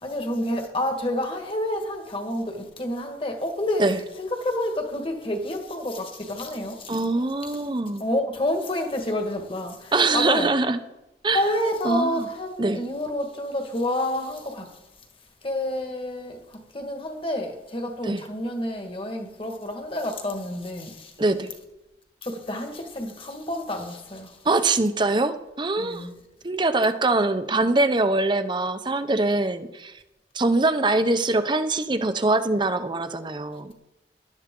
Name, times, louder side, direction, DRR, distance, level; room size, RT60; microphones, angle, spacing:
voice 1, 0.0-3.8 4.2-7.0 7.5-7.6 8.0-10.5 11.3-14.8 15.4-21.1 22.2-24.4 25.8-26.1, left 1 dB, 30° left, 1.7 m, -29 dB
voice 2, 6.9-8.0 9.9-10.8 11.2-11.4 11.8-12.3 12.6-12.8 18.0-18.2 21.2-21.5 24.4-26.1 26.4-29.9 30.3-33.7, right 2 dB, 25° right, 0.7 m, -23 dB
18.0 x 11.5 x 3.8 m
head